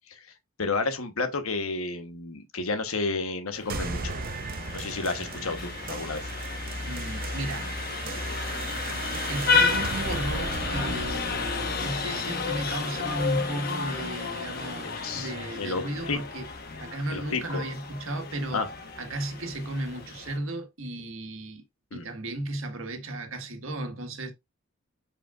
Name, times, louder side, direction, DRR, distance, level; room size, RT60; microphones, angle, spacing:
voice 1, 0.6-4.2 4.7-6.3 14.8-15.3 15.6-16.2 17.1-17.6 18.5-18.7 21.9-22.1, left 3 dB, 85° left, 1.2 m, -31 dB
Vehicle horn car horn honking, 3.6-20.4, left 4 dB, 45° left, 1.2 m, -32 dB
sound 1, 3.7-12.7, right 4 dB, 45° right, 0.7 m, -37 dB
voice 2, 6.9-7.7 9.3-16.5 16.8-18.7 19.0-21.6 21.9-24.3, right 1 dB, 75° right, 1.6 m, -34 dB
7.5 x 5.0 x 2.5 m
head